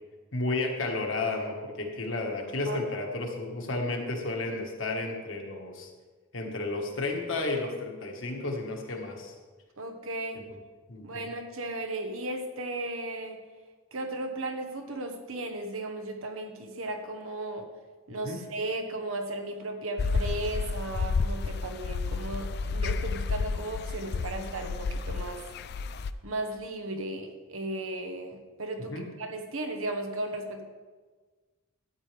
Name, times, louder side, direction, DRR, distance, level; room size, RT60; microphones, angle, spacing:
voice 1, 0.3-5.9 6.3-9.3 10.3-10.4 10.9-11.3 18.1-18.4 28.9-29.0, left 2 dB, 65° left, 1 dB, 1.7 m, -32 dB
voice 2, 2.7-3.0 9.8-10.4 11.0-13.4 13.9-17.7 18.1-25.4 26.2-30.6, right 2 dB, 80° right, 4 dB, 1.2 m, -35 dB
sound 1, 20.0-26.1, left 4 dB, 50° left, 0.4 m, -31 dB
12.5 x 9.2 x 3.4 m, 1.4 s
head